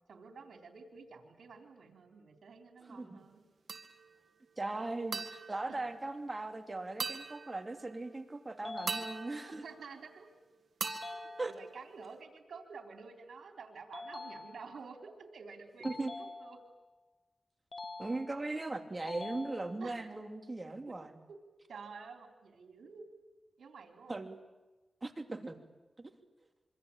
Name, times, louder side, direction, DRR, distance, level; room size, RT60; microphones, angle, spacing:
voice 1, 0.1-3.4 5.7-5.8 9.6-10.3 11.1-16.6 19.8-20.2 21.3-21.4 21.7-23.0 23.6-24.2, right 5 dB, 85° right, 4 dB, 4.0 m, -50 dB
sound 1, 3.7-4.3 5.1-6.5 7.0-8.0 8.9-10.3 10.8-12.2, right 5 dB, 70° right, 1.9 m, -43 dB
voice 2, 4.6-9.6 11.4-11.5 15.8-16.1 18.0-21.2 24.1-24.4 25.0-25.6 26.0-26.1, right 2 dB, 35° right, 6 dB, 2.9 m, -39 dB
sound 2, 8.6-9.7 10.8-11.8 13.9-14.9 15.8-16.9 17.7-18.6 19.1-20.1, left 3 dB, 50° left, 1.5 m, -46 dB
26.0 x 24.5 x 8.9 m, 1.1 s
cardioid pair, 55°, 0 cm